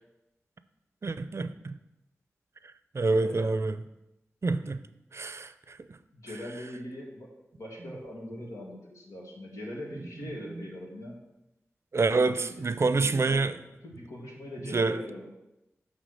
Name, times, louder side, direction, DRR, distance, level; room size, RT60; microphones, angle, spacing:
voice 1, 1.0-1.8 2.9-3.8 4.4-4.8 5.1-6.0 10.6-10.7 11.9-13.6 14.7-15.0, right 3 dB, 55° right, 0.5 m, -27 dB
voice 2, 3.1-3.5 6.1-11.2 12.0-12.4 13.0-13.4 13.8-15.3, left 1 dB, 85° left, 1.9 m, -41 dB
9.0 x 3.6 x 6.5 m
cardioid pair, 45°, 5 cm